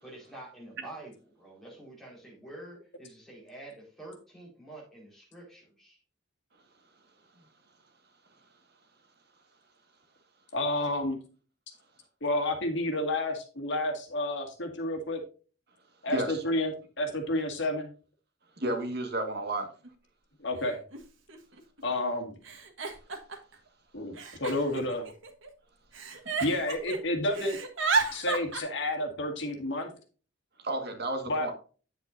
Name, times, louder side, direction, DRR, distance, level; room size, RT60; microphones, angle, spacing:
voice 1, 0.0-6.0, right 2 dB, ahead, -3 dB, 4.5 m, -47 dB
voice 2, 10.5-11.2 12.2-15.2 16.0-17.9 20.4-20.8 21.8-22.4 23.9-25.1 26.4-27.6 28.1-29.9 31.3-31.5, left 1 dB, 65° left, 3 dB, 2.0 m, -30 dB
voice 3, 16.1-16.4 18.6-19.7 30.6-31.5, right 1 dB, 55° right, 5 dB, 1.7 m, -32 dB
Giggle, 19.8-19.9 20.9-21.0 21.3-21.8 22.4-23.5 24.2-25.5 25.9-27.0 27.3-28.6, right 4 dB, 75° right, 1.5 m, -32 dB
9.4 x 8.1 x 2.6 m, 0.37 s
head